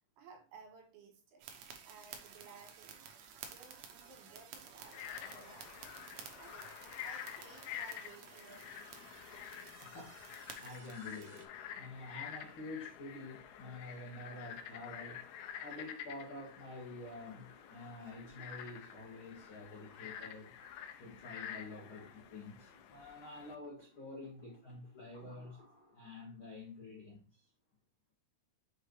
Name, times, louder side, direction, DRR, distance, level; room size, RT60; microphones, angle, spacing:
voice 1, 0.2-1.5 1.9-3.0 3.5-5.9 6.4-6.7 7.0-8.8, right 5 dB, 70° right, 3 dB, 3.1 m, -57 dB
sound 1, 1.4-11.5, right 7 dB, 85° right, 1.7 m, -53 dB
Frog, 4.8-23.6, left 9 dB, 85° left, 2.3 m, -49 dB
voice 2, 9.8-10.3 10.6-15.3 15.6-20.5 21.0-25.6 25.9-27.5, left 2 dB, 65° left, -4 dB, 1.2 m, -48 dB
sound 2, 16.0-26.7, equal, 30° left, 2.4 m, -66 dB
6.2 x 4.9 x 3.1 m, 0.35 s
omnidirectional pair, 4.9 m